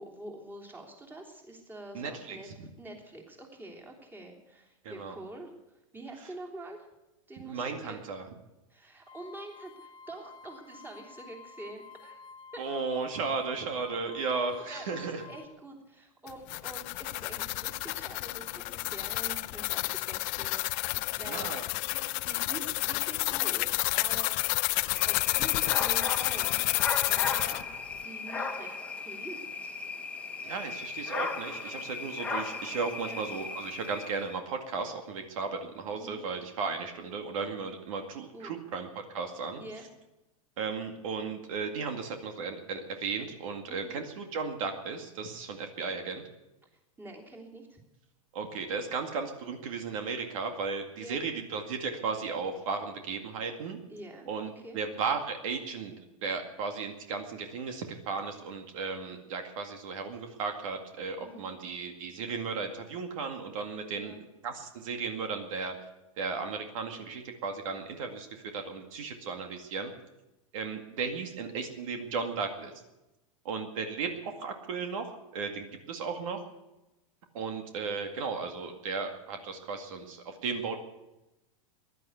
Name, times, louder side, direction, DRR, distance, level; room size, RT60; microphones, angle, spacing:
voice 1, 0.0-5.5 5.9-6.9 7.3-8.0 8.7-12.2 12.5-12.6 14.2-15.0 15.2-21.7 22.2-24.4 25.0-26.6 27.0-27.6 28.0-28.8 29.0-29.4 29.6-29.7 32.9-33.2 35.9-36.2 38.3-38.6 39.6-39.9 43.7-44.0 47.0-47.8 50.9-51.2 53.9-54.3 54.5-54.8 61.2-61.5 63.9-64.2, right 2 dB, 10° right, 0 dB, 3.2 m, -46 dB
voice 2, 1.9-2.7 4.8-5.1 7.4-8.3 12.6-15.2 21.3-21.6 30.4-39.6 40.6-46.2 48.3-53.8 54.3-55.9 56.2-64.2 64.4-65.8 66.2-69.9 70.5-72.7 73.4-76.4 77.3-80.8, right 4 dB, 70° right, 5 dB, 2.2 m, -35 dB
sound 1, 9.1-15.5, left 5 dB, 25° left, 1.2 m, -51 dB
sound 2, 16.3-27.6, left 24 dB, 40° left, 0.4 m, -30 dB
sound 3, 24.9-34.4, left 4 dB, 5° left, 1.5 m, -36 dB
15.5 x 11.5 x 8.1 m, 0.98 s
hypercardioid pair, 130°, 18 cm